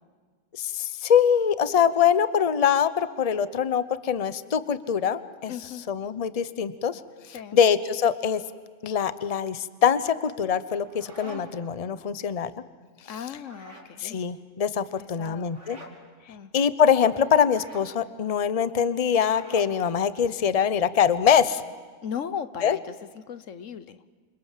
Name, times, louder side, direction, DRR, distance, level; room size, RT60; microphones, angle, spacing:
voice 1, 0.6-5.5 5.9-7.0 7.3-8.4 8.8-12.5 14.0-15.8 16.5-21.6 22.6-22.8, left 7 dB, 35° left, 15 dB, 0.8 m, -23 dB
voice 2, 5.5-5.8 7.3-7.6 13.1-14.2 15.0-15.5 16.3-16.5 22.0-24.0, left 8 dB, 85° left, 14 dB, 1.4 m, -37 dB
sound 1, 10.6-11.7 13.4-13.9 15.5-16.0 17.4-17.9 19.2-19.8, right 1 dB, 70° right, 3.5 m, -45 dB
28.5 x 26.0 x 7.4 m, 1.5 s
omnidirectional pair, 1.3 m